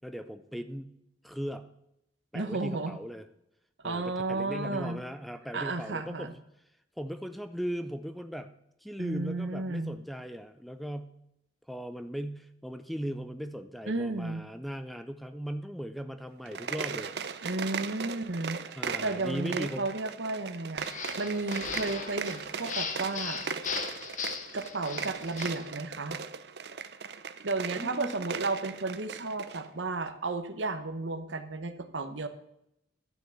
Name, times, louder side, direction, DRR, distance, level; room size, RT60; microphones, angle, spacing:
voice 1, 0.0-0.9 1.2-1.7 2.3-3.3 3.8-6.4 7.0-8.5 8.8-11.2 11.7-17.1 18.8-19.9 27.8-28.2, equal, ahead, 10 dB, 0.4 m, -38 dB
voice 2, 2.3-3.0 3.8-5.0 5.5-6.3 9.0-10.0 13.9-14.4 17.4-18.6 19.0-23.4 24.5-26.2 27.4-32.3, right 3 dB, 80° right, 9 dB, 1.0 m, -33 dB
sound 1, 16.4-29.7, right 6 dB, 60° right, 0.6 m, -38 dB
sound 2, 20.8-25.7, left 6 dB, 40° left, 0.9 m, -38 dB
11.5 x 6.0 x 6.9 m, 0.80 s
head